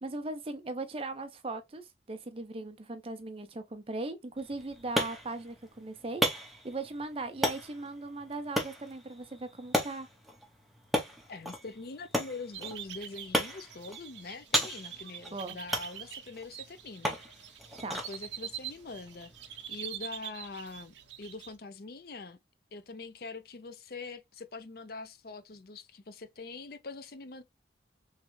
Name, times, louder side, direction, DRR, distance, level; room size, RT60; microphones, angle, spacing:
voice 1, 0.0-10.1 15.3-15.6 17.8-18.0, right 2 dB, 30° right, 0.6 m, -39 dB
sound 1, 4.4-20.0, equal, ahead, 0.7 m, -36 dB
voice 2, 11.3-17.2 17.9-19.3 19.7-22.4 22.7-27.4, left 3 dB, 50° left, 0.5 m, -44 dB
sound 2, 12.5-21.6, right 10 dB, 70° right, 0.6 m, -45 dB
3.5 x 3.2 x 3.1 m
head